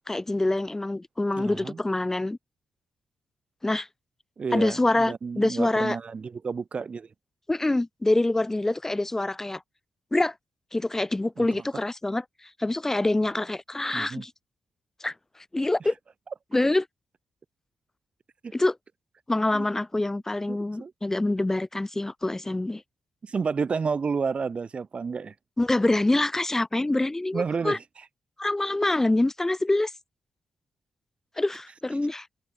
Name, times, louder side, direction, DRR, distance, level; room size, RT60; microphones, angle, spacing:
voice 1, 0.1-2.4 3.6-3.9 4.5-6.0 7.5-9.6 10.1-10.3 10.7-14.3 15.0-15.1 15.5-15.9 16.5-16.9 18.5-18.8 19.3-22.8 25.6-27.8 28.4-29.9 31.4-32.3, left 2 dB, 15° left, 1.3 m, -25 dB
voice 2, 1.3-1.8 4.4-7.1 11.4-11.6 13.9-14.2 18.4-18.5 19.5-19.7 20.5-20.9 23.2-25.3 27.3-27.8, right 5 dB, 40° right, 1.7 m, -31 dB
cardioid pair, 105°, 3 cm